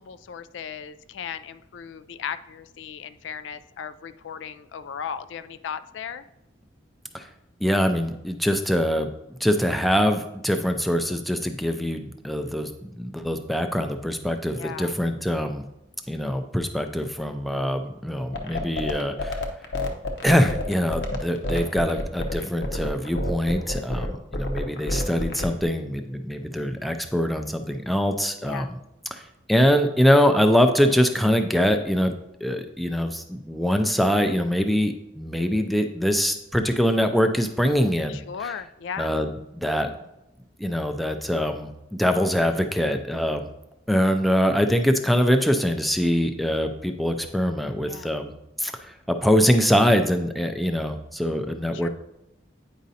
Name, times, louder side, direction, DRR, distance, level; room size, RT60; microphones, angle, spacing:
voice 1, 0.0-6.2 14.6-14.9 23.7-24.7 28.4-28.7 38.1-39.1 47.8-48.1 51.7-51.9, left 7 dB, 85° left, 13 dB, 0.3 m, -37 dB
voice 2, 7.6-15.6 16.1-19.5 20.2-28.8 29.1-29.2 29.5-32.1 32.4-38.5 39.0-39.9 40.6-41.7 42.0-43.5 43.9-48.3 48.6-51.9, equal, ahead, 6 dB, 0.4 m, -23 dB
sound 1, 18.3-25.6, left 1 dB, 65° left, 0.8 m, -28 dB
9.1 x 5.1 x 2.7 m, 0.88 s
head